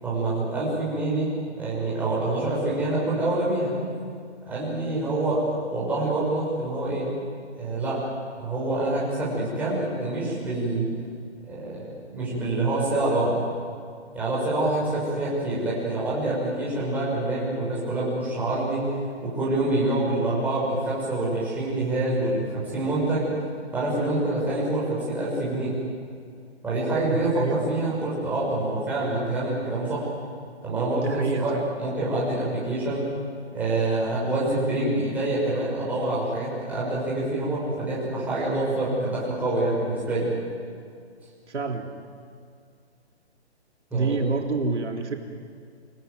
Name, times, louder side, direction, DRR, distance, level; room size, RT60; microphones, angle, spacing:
voice 1, 0.0-3.7 4.5-7.1 7.6-8.0 8.4-10.9 11.4-13.4 14.1-18.8 19.2-23.2 23.7-25.7 26.6-30.0 30.6-33.0 33.5-40.3 43.9-44.2, right 2 dB, 5° right, -8 dB, 6.2 m, -26 dB
voice 2, 27.1-27.7 31.0-31.6 41.5-41.9 43.9-45.2, right 4 dB, 80° right, 2 dB, 3.5 m, -27 dB
28.5 x 18.0 x 9.5 m, 2.3 s
hypercardioid pair, 165°, 34 cm